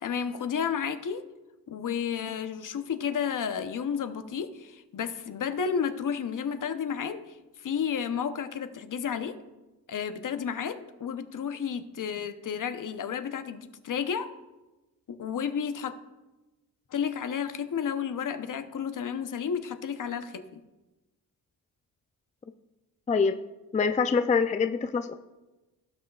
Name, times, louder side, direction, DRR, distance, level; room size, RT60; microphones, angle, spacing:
voice 1, 0.0-1.2 1.7-9.3 9.9-14.3 15.1-16.0 16.9-20.6, left 7 dB, 55° left, 10 dB, 0.8 m, -32 dB
voice 2, 23.1-23.4 23.7-25.1, left 5 dB, 20° left, 9 dB, 0.4 m, -25 dB
17.0 x 6.3 x 2.4 m, 1.1 s
cardioid pair, 65°, 38 cm